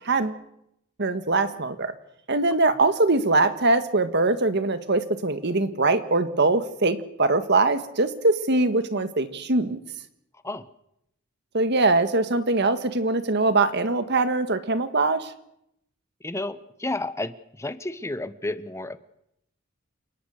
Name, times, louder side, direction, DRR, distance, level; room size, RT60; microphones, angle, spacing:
voice 1, 0.0-0.4 1.0-1.9 2.3-9.8 11.5-15.3, right 2 dB, 60° right, 10 dB, 1.7 m, -22 dB
voice 2, 16.2-19.0, left 2 dB, 15° left, 13 dB, 1.0 m, -31 dB
29.0 x 18.0 x 6.6 m, 0.79 s
head